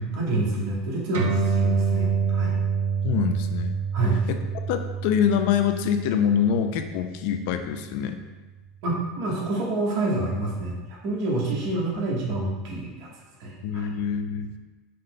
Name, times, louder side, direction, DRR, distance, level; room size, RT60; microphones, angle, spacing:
voice 1, 0.1-2.5 3.9-4.2 8.8-10.7 11.0-13.1 13.4-13.9, right 2 dB, 55° right, -3 dB, 1.2 m, -27 dB
sound 1, 1.1-8.0, right 6 dB, 85° right, 0.7 m, -27 dB
voice 2, 3.0-3.8 4.3-4.4 4.7-8.2 13.6-14.5, left 8 dB, 60° left, 7 dB, 0.3 m, -25 dB
5.1 x 2.2 x 3.8 m, 1.2 s
supercardioid pair, 160°, 0 cm